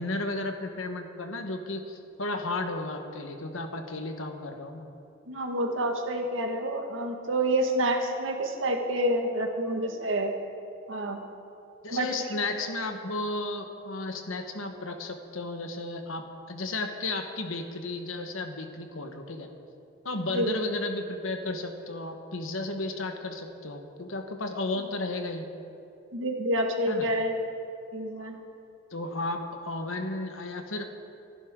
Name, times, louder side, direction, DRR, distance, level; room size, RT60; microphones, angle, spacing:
voice 1, 0.0-4.8 11.8-19.5 20.0-25.5 26.9-27.1 28.9-30.8, left 2 dB, 80° left, 5 dB, 1.3 m, -33 dB
voice 2, 5.3-10.3 10.9-11.2 11.9-12.1 20.3-20.5 24.8-24.9 26.1-27.4 27.9-28.4, right 1 dB, 70° right, 3 dB, 1.7 m, -28 dB
26.5 x 11.0 x 3.8 m, 2.7 s
head